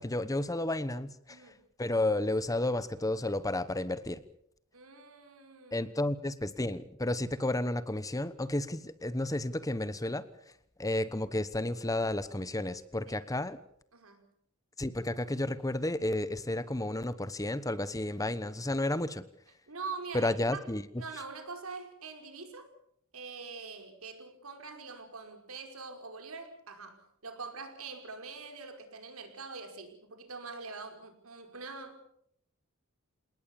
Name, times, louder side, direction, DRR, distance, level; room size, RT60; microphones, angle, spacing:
voice 1, 0.0-1.4 1.8-4.2 5.7-10.2 10.8-13.6 14.8-19.2 20.1-20.8, left 1 dB, 15° left, 14 dB, 1.1 m, -32 dB
voice 2, 1.3-1.6 4.7-5.9 13.0-13.2 13.9-14.2 19.7-20.6 21.0-22.7 23.1-32.0, right 4 dB, 85° right, 5 dB, 5.4 m, -44 dB
28.0 x 19.0 x 7.1 m, 0.70 s
head